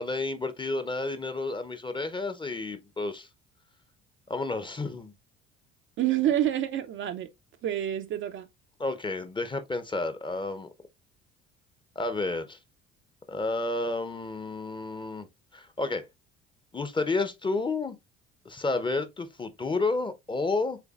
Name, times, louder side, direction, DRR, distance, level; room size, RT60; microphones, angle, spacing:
voice 1, 0.0-3.3 4.3-5.1 8.8-10.7 12.0-12.6 13.3-15.3 15.5-16.1 16.7-18.0 18.5-20.8, left 3 dB, 15° left, 0.7 m, -31 dB
voice 2, 6.0-7.3 7.6-8.5, right 12 dB, 35° right, 0.5 m, -27 dB
5.8 x 3.7 x 2.4 m
figure-of-eight pair, 55°, 35 cm